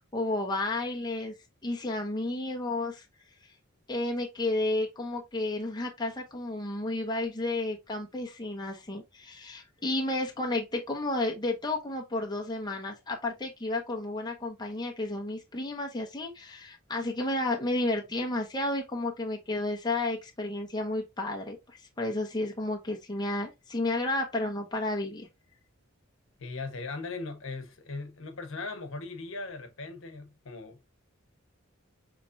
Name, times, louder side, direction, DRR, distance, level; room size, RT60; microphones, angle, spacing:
voice 1, 0.1-1.3 1.6-3.0 3.9-25.3, left 2 dB, 20° left, 0.9 m, -32 dB
voice 2, 26.4-30.8, left 3 dB, 65° left, 1.0 m, -39 dB
5.9 x 3.1 x 2.5 m
head